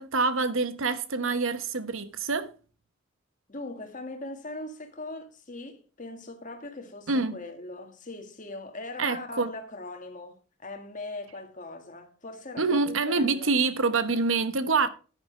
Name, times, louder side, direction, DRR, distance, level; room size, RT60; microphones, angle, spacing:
voice 1, 0.0-2.5 7.1-7.4 9.0-9.5 12.6-14.9, right 4 dB, 70° right, 1.0 m, -26 dB
voice 2, 3.5-13.5, left 2 dB, 35° left, 1.8 m, -40 dB
10.0 x 9.9 x 3.3 m
head